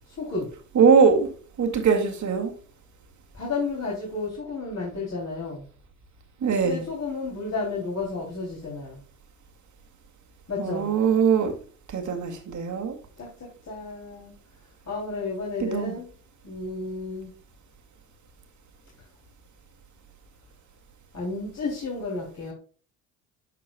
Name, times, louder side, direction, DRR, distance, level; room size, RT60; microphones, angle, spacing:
voice 1, 0.1-0.5 3.3-5.7 6.6-9.0 10.5-10.9 13.2-14.3 14.8-16.1 16.4-17.3 21.1-22.5, left 3 dB, 40° left, -4 dB, 3.3 m, -32 dB
voice 2, 0.7-1.3 1.6-2.5 6.4-6.8 10.6-11.5 11.9-13.0 15.6-15.9, right 6 dB, 45° right, 3 dB, 2.3 m, -21 dB
13.0 x 4.6 x 2.3 m, 0.41 s
hypercardioid pair, 60°, 40 cm